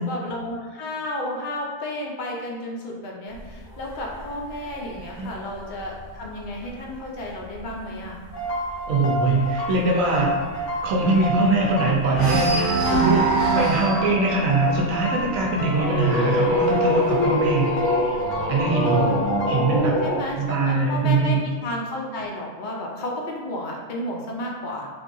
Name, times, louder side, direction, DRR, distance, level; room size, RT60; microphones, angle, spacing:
voice 1, 0.0-8.2 18.7-19.3 20.0-24.9, left 1 dB, 60° left, -1 dB, 0.5 m, -32 dB
sound 1, 3.3-7.0 7.4-7.7 8.0-8.1 8.5-11.7 12.1-18.6 19.5-20.5, right 3 dB, 40° right, 0.9 m, -29 dB
sound 2, 8.3-19.8, right 1 dB, 75° left, 0.9 m, -29 dB
voice 2, 8.9-17.7 18.5-19.1 19.5-19.9 20.3-21.4, right 3 dB, 85° right, -2 dB, 1.0 m, -22 dB
sound 3, 15.4-20.2, left 1 dB, 90° left, 1.2 m, -24 dB
3.3 x 2.5 x 2.5 m, 1.5 s
omnidirectional pair, 1.3 m